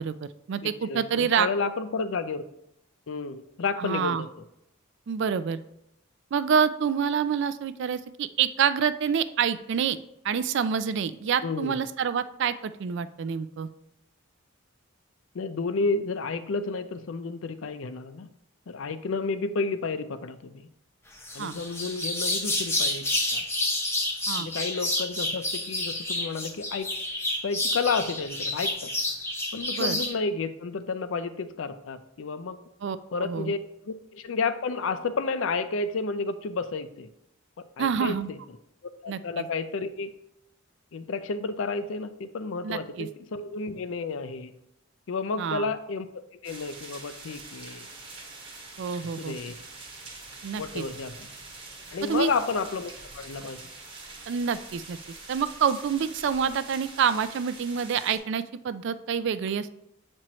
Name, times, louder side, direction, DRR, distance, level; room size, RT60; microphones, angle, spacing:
voice 1, 0.0-1.5 3.8-4.2 5.1-5.6 6.3-10.0 10.2-13.7 21.4-21.5 24.3-24.5 29.7-30.0 32.8-33.5 37.8-38.3 39.1-39.5 42.6-43.1 45.4-45.7 48.8-49.4 50.4-50.8 52.1-52.3 54.3-55.0 55.3-59.7, right 7 dB, 55° right, 14 dB, 0.3 m, -27 dB
voice 2, 0.6-2.4 3.1-4.3 11.4-11.8 15.3-18.3 18.7-20.7 21.3-23.0 23.3-23.4 24.4-26.9 27.4-28.9 29.5-32.6 33.1-33.6 33.8-37.1 37.8-38.4 39.0-40.1 40.9-44.5 45.1-46.1 46.4-47.9 49.2-49.5 50.6-51.3 51.9-53.6, left 4 dB, 65° left, 11 dB, 0.4 m, -31 dB
sound 1, 21.2-30.1, left 1 dB, 10° left, 0.7 m, -29 dB
sound 2, 46.4-58.2, right 3 dB, 25° right, 1.2 m, -44 dB
7.4 x 4.4 x 3.0 m, 0.80 s
head